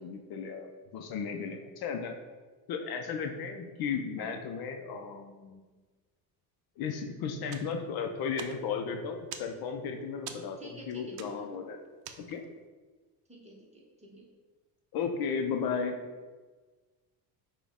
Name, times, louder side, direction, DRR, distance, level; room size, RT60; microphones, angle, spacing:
voice 1, 0.0-2.2 2.7-5.6 6.8-11.8 12.3-12.4 14.9-16.0, left 6 dB, 60° left, 4 dB, 0.6 m, -35 dB
sound 1, 7.4-12.7, right 8 dB, 80° right, 0.6 m, -48 dB
voice 2, 10.6-11.5 13.3-14.3, right 1 dB, 15° right, -2 dB, 0.9 m, -50 dB
6.0 x 2.3 x 3.6 m, 1.3 s
cardioid pair, 110°, 43 cm